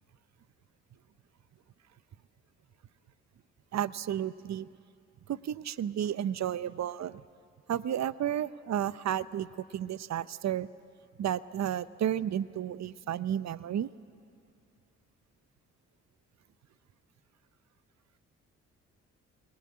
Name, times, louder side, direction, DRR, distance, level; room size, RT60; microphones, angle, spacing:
voice 1, 3.7-4.7 5.3-7.2 7.7-9.5 9.7-10.7 11.2-13.9, right 10 dB, 50° right, 16 dB, 0.8 m, -32 dB
29.0 x 20.0 x 8.7 m, 2.3 s
hypercardioid pair, 50°, 34 cm